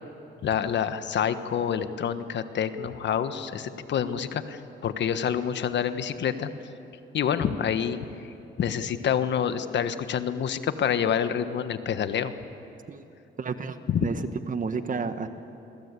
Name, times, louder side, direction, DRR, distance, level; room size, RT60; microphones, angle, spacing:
voice 1, 0.4-6.5 7.1-8.0 8.6-12.3 13.9-14.1, left 8 dB, 65° left, 10 dB, 1.5 m, -27 dB
voice 2, 13.4-15.3, right 5 dB, 40° right, 9 dB, 1.6 m, -31 dB
27.5 x 22.0 x 8.5 m, 2.8 s
cardioid pair, 90°, 20 cm